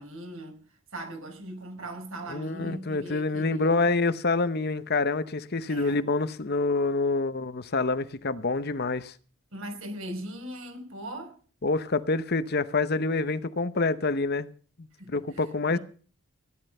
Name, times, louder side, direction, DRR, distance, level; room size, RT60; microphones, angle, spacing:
voice 1, 0.0-3.7 5.7-6.0 9.5-11.4 15.0-15.4 15.7-15.8, right 1 dB, 70° right, 5.0 m, -39 dB
voice 2, 2.3-9.1 11.6-14.5 14.8-15.8, left 3 dB, 45° left, 0.9 m, -27 dB
16.5 x 11.5 x 5.5 m
head